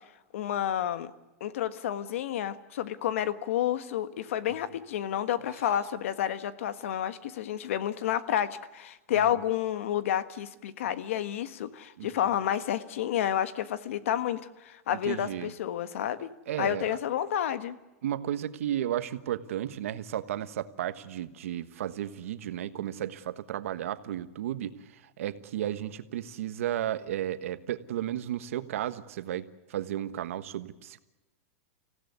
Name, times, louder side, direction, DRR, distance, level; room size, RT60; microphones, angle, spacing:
voice 1, 0.3-1.1 1.4-16.3 16.6-17.8, left 10 dB, 65° left, 13 dB, 1.5 m, -30 dB
voice 2, 15.0-15.5 16.5-17.0 18.0-24.8 25.2-31.0, right 11 dB, 75° right, 12 dB, 1.4 m, -33 dB
26.0 x 16.5 x 9.5 m, 1.1 s
supercardioid pair, 180°, 8 cm